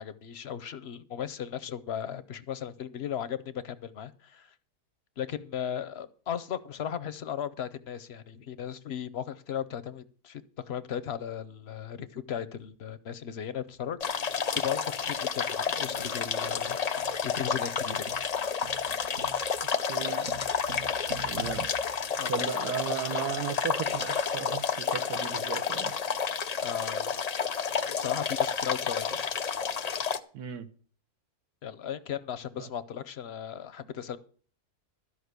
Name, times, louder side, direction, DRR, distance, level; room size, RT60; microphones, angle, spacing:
voice 1, 0.0-4.5 5.2-10.4 10.7-14.0 14.5-18.1 22.2-22.7 26.6-27.1 28.0-29.2 31.6-34.2, left 9 dB, 55° left, 0.8 m, -36 dB
sound 1, 12.6-12.8 13.7-13.9 14.2-22.8, right 5 dB, 50° right, 0.9 m, -48 dB
sound 2, 14.0-30.2, left 6 dB, 80° left, 0.3 m, -30 dB
voice 2, 19.9-20.3 21.2-21.7 22.3-25.9 30.3-30.7 32.6-32.7, right 8 dB, 80° right, 1.4 m, -35 dB
13.0 x 5.4 x 8.1 m
omnidirectional pair, 1.6 m